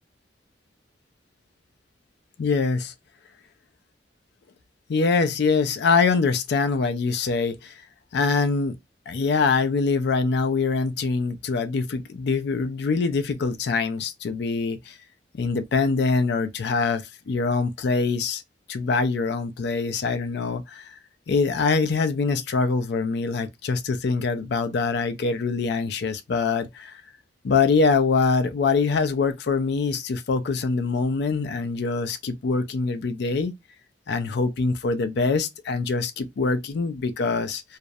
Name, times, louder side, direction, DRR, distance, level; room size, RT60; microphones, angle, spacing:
voice 1, 2.4-2.9 4.9-7.8 8.1-8.8 9.1-14.9 15.3-18.4 18.7-21.0 21.3-27.0 27.4-33.5 34.1-37.6, left 4 dB, 65° left, 0.4 m, -24 dB
2.3 x 2.0 x 2.6 m
head